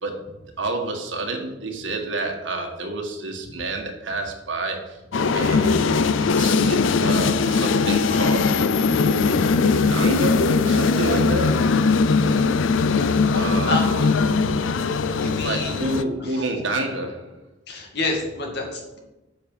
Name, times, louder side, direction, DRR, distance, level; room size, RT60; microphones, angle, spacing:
voice 1, 0.6-5.0 5.3-5.9 6.3-8.6 8.9-11.6 13.3-14.0 15.4-17.4, right 2 dB, 75° right, 3 dB, 1.5 m, -29 dB
sound 1, 5.1-16.0, left 4 dB, 90° left, 0.5 m, -20 dB
voice 2, 13.0-14.1 15.1-15.9 16.2-16.5 17.7-19.0, left 2 dB, 60° left, 1 dB, 2.1 m, -29 dB
7.7 x 6.4 x 5.5 m, 0.99 s
head